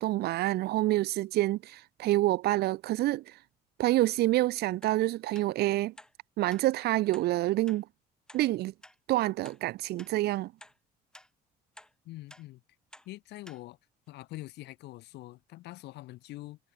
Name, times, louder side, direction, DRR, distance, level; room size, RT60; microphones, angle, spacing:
voice 1, 0.0-3.4 3.8-5.9 6.4-7.8 8.3-8.7 9.1-10.5, right 16 dB, 75° right, 0.8 m, -27 dB
sound 1, 4.8-5.0 5.3-5.5 6.0-6.1 6.5-6.6 7.1-7.3 7.7-7.8 8.3-8.4 8.8-8.9 9.4-9.6 10.0-10.1 10.6-10.8 11.1-11.3 11.8-11.9 12.3-12.4 12.9-13.1 13.4-13.6 14.1-14.2, left 1 dB, 5° left, 5.3 m, -52 dB
voice 2, 12.0-12.6 13.1-13.8 14.1-16.6, left 17 dB, 80° left, 5.7 m, -44 dB
cardioid pair, 110°, 17 cm